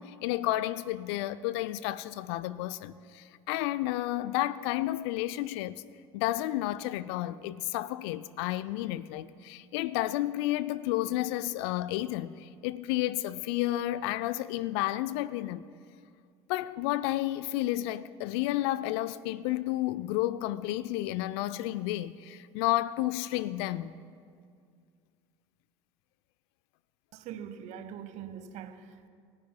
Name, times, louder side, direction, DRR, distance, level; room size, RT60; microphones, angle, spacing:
voice 1, 0.0-5.8 6.1-15.6 16.5-23.9, left 15 dB, 60° left, 0.5 m, -31 dB
voice 2, 27.1-29.1, right 8 dB, 50° right, 1.0 m, -43 dB
27.0 x 14.0 x 2.2 m
figure-of-eight pair, 70°, 15 cm